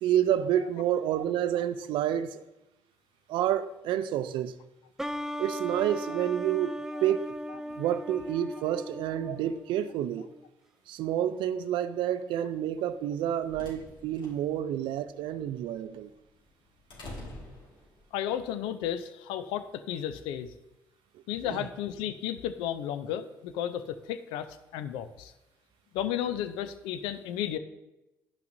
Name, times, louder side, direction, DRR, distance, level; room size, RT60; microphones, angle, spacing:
voice 1, 0.0-2.4 3.3-4.5 5.4-10.3 10.9-16.1 21.5-21.7, right 10 dB, 75° right, 12 dB, 0.4 m, -29 dB
sound 1, 5.0-10.4, equal, 5° right, 0.4 m, -38 dB
sound 2, 13.0-18.3, left 1 dB, 65° left, 1.8 m, -48 dB
voice 2, 18.1-20.5 21.3-25.3 25.9-27.6, left 10 dB, 85° left, 11 dB, 0.4 m, -33 dB
10.0 x 5.7 x 2.6 m, 0.96 s
supercardioid pair, 60°, 8 cm